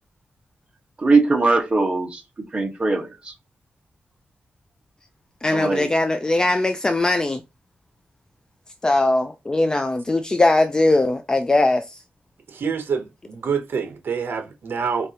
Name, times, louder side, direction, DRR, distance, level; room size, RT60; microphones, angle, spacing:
voice 1, 1.0-2.2 2.5-3.3 5.5-5.9, right 3 dB, 30° right, 1.3 m, -20 dB
voice 2, 5.4-7.4 8.8-12.0, left 2 dB, 20° left, 0.3 m, -20 dB
voice 3, 12.5-15.1, right 6 dB, 70° right, 0.8 m, -26 dB
4.6 x 2.7 x 2.8 m
wide cardioid pair, 140°, 4 cm